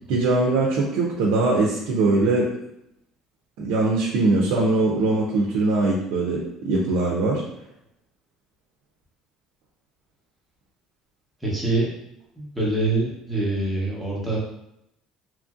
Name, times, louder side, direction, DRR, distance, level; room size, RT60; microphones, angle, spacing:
voice 1, 0.1-2.5 3.6-7.4, right 2 dB, 75° right, -3 dB, 0.5 m, -21 dB
voice 2, 11.4-11.9 12.4-14.4, right 2 dB, 5° right, -6 dB, 0.8 m, -24 dB
2.9 x 2.5 x 2.4 m, 0.80 s
cardioid pair, 155°, 0 cm